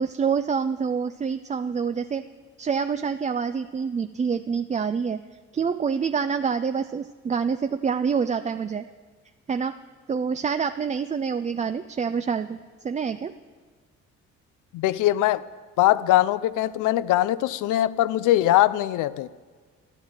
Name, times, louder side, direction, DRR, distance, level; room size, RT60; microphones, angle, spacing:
voice 1, 0.0-2.2 2.6-5.2 5.5-8.8 9.5-9.7 10.1-12.6 12.8-13.3, right 6 dB, 25° right, 0.4 m, -26 dB
voice 2, 14.7-15.4 15.8-19.3, left 14 dB, 90° left, 0.5 m, -21 dB
11.5 x 10.5 x 8.9 m
cardioid pair, 90°, 30 cm